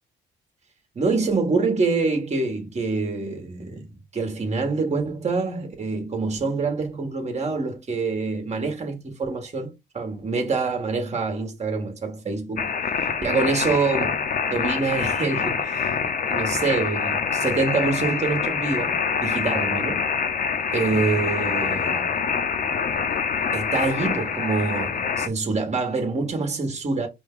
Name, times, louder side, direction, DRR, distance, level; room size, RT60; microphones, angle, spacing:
voice 1, 0.9-12.7 13.2-15.9 16.3-20.0 20.7-22.2 23.5-27.1, right 4 dB, 35° right, 1.4 m, -26 dB
sound 1, 12.6-25.3, left 6 dB, 45° left, 0.6 m, -25 dB
4.9 x 2.3 x 3.7 m
cardioid pair, 90°, 20 cm